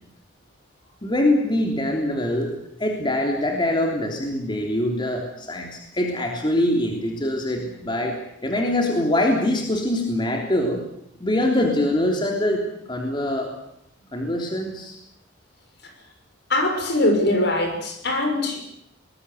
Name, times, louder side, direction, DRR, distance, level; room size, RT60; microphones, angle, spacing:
voice 1, 1.0-2.5 2.8-10.9 11.2-13.5 14.1-15.0, left 1 dB, 25° left, 1 dB, 3.4 m, -23 dB
voice 2, 16.5-18.6, left 1 dB, 60° left, 5 dB, 6.5 m, -22 dB
24.0 x 20.0 x 8.1 m, 0.75 s
head